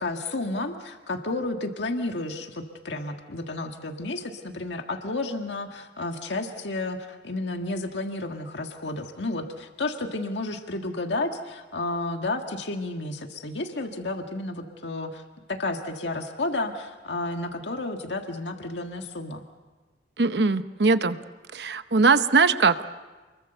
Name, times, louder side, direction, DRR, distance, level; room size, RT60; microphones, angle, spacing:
voice 1, 0.0-15.2 15.5-19.4, left 2 dB, 90° left, 4 dB, 1.7 m, -31 dB
voice 2, 20.2-21.2 21.5-22.8, right 4 dB, 70° right, 11 dB, 0.9 m, -21 dB
29.0 x 22.0 x 6.8 m, 1.3 s
head